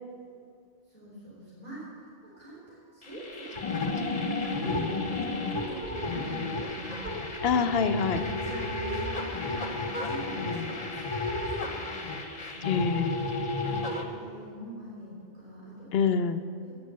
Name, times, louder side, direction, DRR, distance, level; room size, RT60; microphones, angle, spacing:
voice 1, 0.9-1.9 2.2-5.0 5.7-7.2 8.1-11.7 12.4-12.9 13.6-15.9 16.6-16.8, right 1 dB, 35° right, -10 dB, 3.6 m, -44 dB
sound 1, 3.0-14.0, left 2 dB, 35° left, 1.1 m, -32 dB
voice 2, 4.6-4.9 7.4-8.2 10.4-10.8 12.6-13.2 15.9-16.4, left 6 dB, 65° left, 10 dB, 0.8 m, -27 dB
11.5 x 8.8 x 6.6 m, 2.3 s
omnidirectional pair, 1.2 m